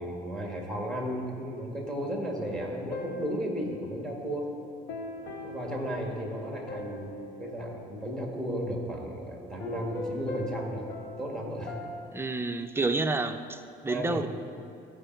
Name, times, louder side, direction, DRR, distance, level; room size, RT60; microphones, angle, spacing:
voice 1, 0.0-4.5 5.4-11.8 13.9-14.3, equal, 5° left, 0 dB, 1.7 m, -34 dB
sound 1, 2.4-9.0 9.6-12.2, left 2 dB, 80° left, 0.9 m, -41 dB
voice 2, 12.1-14.3, right 3 dB, 15° right, 8 dB, 0.5 m, -29 dB
14.5 x 5.0 x 4.5 m, 2.5 s
cardioid pair, 110°, 17 cm